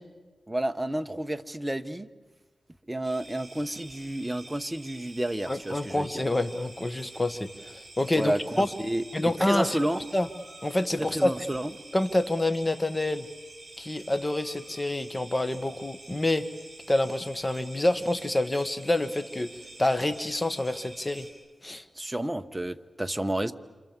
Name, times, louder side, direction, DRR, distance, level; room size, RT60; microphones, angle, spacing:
voice 1, 0.5-2.1 2.9-6.1 8.1-9.0 9.4-10.0 11.0-11.7 22.0-23.5, right 1 dB, 10° right, 8 dB, 1.1 m, -30 dB
sound 1, 3.0-21.3, right 2 dB, 55° right, 7.7 m, -48 dB
voice 2, 5.5-8.7 9.1-9.8 10.1-10.3 10.6-11.3 11.9-13.3 13.8-16.5 16.9-19.5 19.8-21.3 21.6-21.8, left 1 dB, 20° left, 9 dB, 1.4 m, -27 dB
27.5 x 27.5 x 7.5 m, 1.3 s
wide cardioid pair, 100°, 0 cm